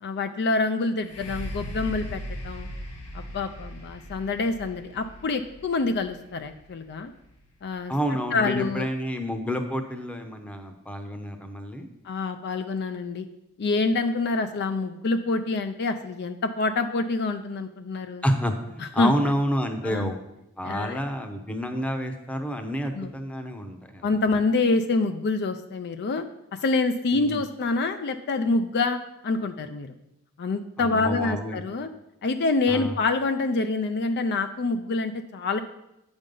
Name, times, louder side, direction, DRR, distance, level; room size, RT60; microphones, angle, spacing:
voice 1, 0.0-2.7 3.1-7.1 7.6-7.9 8.3-8.9 12.0-13.3 13.6-18.2 18.8-19.1 19.8-20.1 20.6-21.0 23.0-23.1 24.0-26.2 26.5-29.9 30.4-31.9 32.2-35.6, left 3 dB, 50° left, 8 dB, 0.4 m, -26 dB
sound 1, 1.0-8.7 9.4-9.5, equal, 85° left, 1.5 m, -39 dB
voice 2, 7.9-11.9 18.2-20.2 20.6-24.1 27.1-27.4 30.8-31.6 32.7-32.9, equal, 5° left, 5 dB, 0.7 m, -29 dB
8.4 x 5.2 x 5.4 m, 0.88 s
head